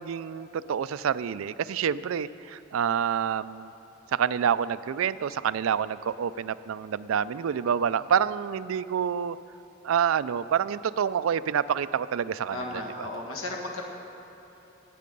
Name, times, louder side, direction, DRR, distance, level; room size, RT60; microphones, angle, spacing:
voice 1, 0.0-3.7 4.1-9.4 9.8-12.8, right 8 dB, 85° right, 16 dB, 0.3 m, -27 dB
voice 2, 12.5-13.8, left 2 dB, 85° left, 0 dB, 1.9 m, -34 dB
19.0 x 8.5 x 5.3 m, 3.0 s
head